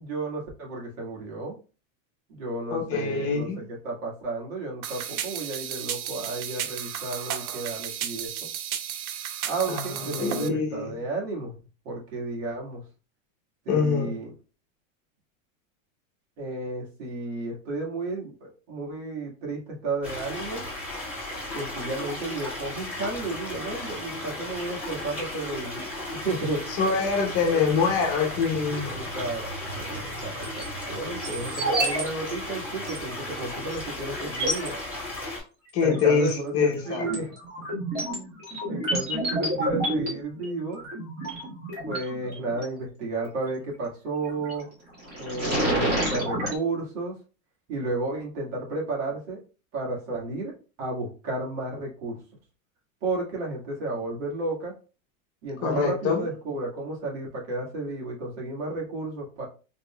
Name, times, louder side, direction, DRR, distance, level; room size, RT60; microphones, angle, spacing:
voice 1, 0.0-1.5 2.3-8.5 9.4-11.5 11.9-12.8 13.7-14.3 16.4-20.6 21.5-26.6 27.5-27.7 28.9-29.4 29.8-30.5 30.9-34.8 35.8-37.3 38.1-38.4 38.7-40.8 41.9-44.7 45.2-47.1 47.7-49.4 49.7-50.5 50.8-52.2 53.0-54.7 55.4-59.5, right 3 dB, 60° right, -2 dB, 1.9 m, -32 dB
voice 2, 2.7-3.6 9.7-10.9 13.7-14.1 26.8-28.9 35.7-37.0 55.6-56.2, left 5 dB, 35° left, 1 dB, 0.9 m, -25 dB
sound 1, 4.8-10.5, right 10 dB, 85° right, 0.7 m, -33 dB
sound 2, 20.0-35.4, left 1 dB, 5° right, 1.8 m, -35 dB
sound 3, 30.2-30.6 31.2-32.0 32.3-32.4 32.9-33.0 33.7-33.8 34.2-34.7 35.9-36.3 36.7-42.6 44.2-44.6 45.0-46.6, right 1 dB, 25° right, 1.7 m, -29 dB
4.0 x 3.3 x 2.2 m, 0.35 s
supercardioid pair, 150°, 41 cm